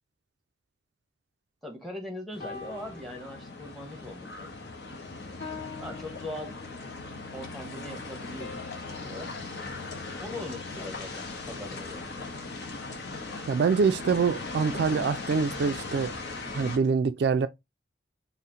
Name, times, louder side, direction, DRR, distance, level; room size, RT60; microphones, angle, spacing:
voice 1, 1.6-4.5 5.8-6.6 7.3-9.4 10.2-12.3, left 1 dB, ahead, 0.9 m, -41 dB
sound 1, 2.3-16.8, left 3 dB, 65° left, 0.8 m, -39 dB
sound 2, 2.4-4.0 4.4-4.7 5.4-7.1 8.4-10.8, left 4 dB, 40° left, 1.6 m, -46 dB
voice 2, 13.5-16.1 16.5-17.5, right 5 dB, 60° right, 0.3 m, -25 dB
4.1 x 2.1 x 3.6 m
head